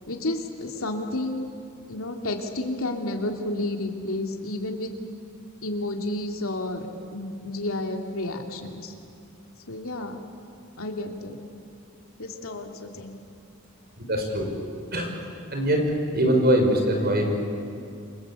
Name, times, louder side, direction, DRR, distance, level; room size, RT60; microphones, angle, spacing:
voice 1, 0.1-1.5 1.9-4.9 5.6-6.9 7.1-8.9 9.7-10.2 10.8-11.4 12.2-13.2, left 2 dB, 85° left, 3 dB, 2.8 m, -31 dB
voice 2, 14.0-14.5 14.9-15.2 15.5-15.8 16.1-17.3, right 1 dB, 50° right, 3 dB, 5.1 m, -22 dB
29.0 x 24.0 x 8.4 m, 2.6 s
head